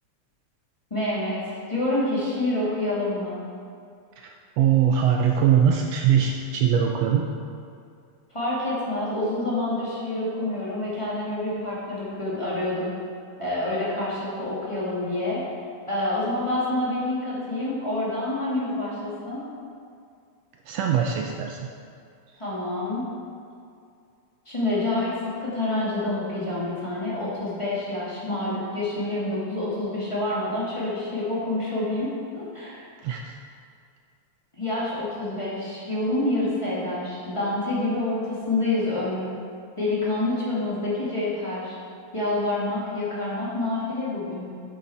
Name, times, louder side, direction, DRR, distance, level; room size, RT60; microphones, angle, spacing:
voice 1, 0.9-3.4 8.3-12.9 13.4-15.4 15.9-19.4 22.4-23.1 24.4-25.1 25.4-32.8 34.5-39.4 39.8-41.7 42.1-44.5, left 2 dB, 10° left, -9 dB, 1.6 m, -27 dB
voice 2, 4.2-7.3 20.6-21.7 22.3-22.4 33.0-33.4, right 8 dB, 85° right, 2 dB, 1.4 m, -22 dB
9.4 x 7.7 x 4.2 m, 2.3 s
omnidirectional pair, 3.4 m